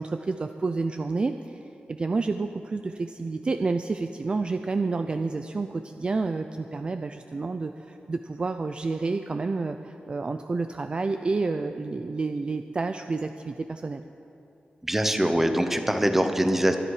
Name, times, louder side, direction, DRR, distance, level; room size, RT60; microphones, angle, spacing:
voice 1, 0.0-14.0, right 3 dB, 30° right, 8 dB, 0.4 m, -29 dB
voice 2, 14.8-16.8, right 1 dB, 10° right, 6 dB, 0.9 m, -23 dB
23.5 x 10.5 x 4.9 m, 2.9 s
wide cardioid pair, 170°, 3 cm